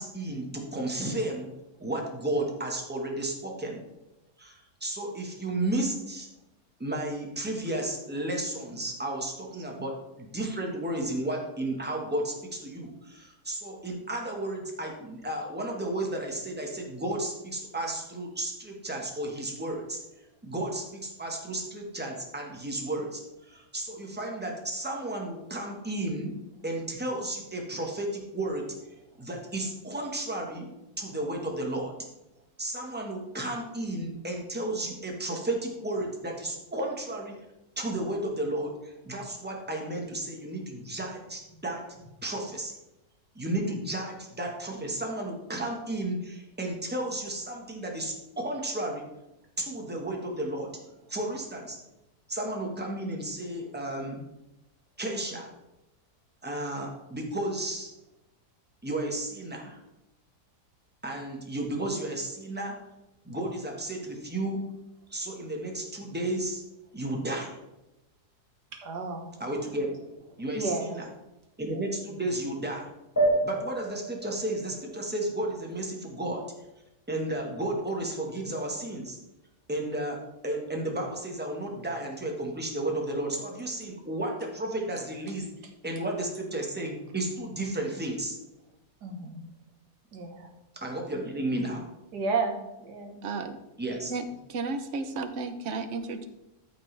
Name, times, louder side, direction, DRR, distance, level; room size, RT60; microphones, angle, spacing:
voice 1, 0.0-1.5 1.8-3.8 4.4-6.3 6.8-20.0 20.4-23.2 23.5-26.3 26.6-28.7 29.2-31.9 32.6-37.4 37.8-42.8 43.3-49.0 49.6-50.8 51.1-51.8 52.3-54.2 55.0-55.5 56.4-57.9 58.8-59.8 61.0-62.8 63.2-64.6 65.1-66.6 66.9-67.6 69.4-70.0 70.4-71.1 71.6-72.9 73.4-76.5 77.1-79.2 79.7-85.5 85.8-88.4 90.7-91.8 93.8-94.1, right 1 dB, 5° right, 0 dB, 1.3 m, -33 dB
voice 2, 68.8-69.3 70.5-71.1 89.0-89.5 90.1-90.5 92.1-93.2, right 4 dB, 80° right, 2 dB, 1.9 m, -32 dB
sound 1, 73.2-76.1, right 2 dB, 15° left, 1.0 m, -30 dB
voice 3, 93.2-93.6 94.1-96.2, right 3 dB, 55° right, 9 dB, 1.0 m, -33 dB
13.5 x 5.5 x 3.3 m, 0.94 s
omnidirectional pair, 1.8 m